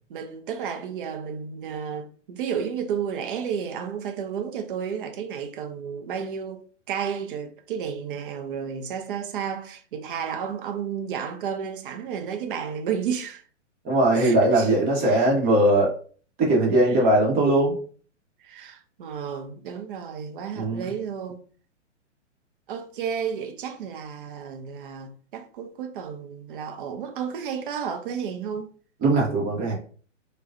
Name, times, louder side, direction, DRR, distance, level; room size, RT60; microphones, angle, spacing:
voice 1, 0.1-6.6 6.9-13.4 14.1-14.7 15.0-15.3 16.9-17.0 18.4-21.4 22.7-28.7, right 7 dB, 45° right, 0.7 m, -32 dB
voice 2, 13.8-15.9 16.4-17.8 20.5-20.8 29.0-29.7, right 1 dB, 25° right, 1.2 m, -20 dB
4.7 x 2.4 x 2.5 m
hypercardioid pair, 125°, 37 cm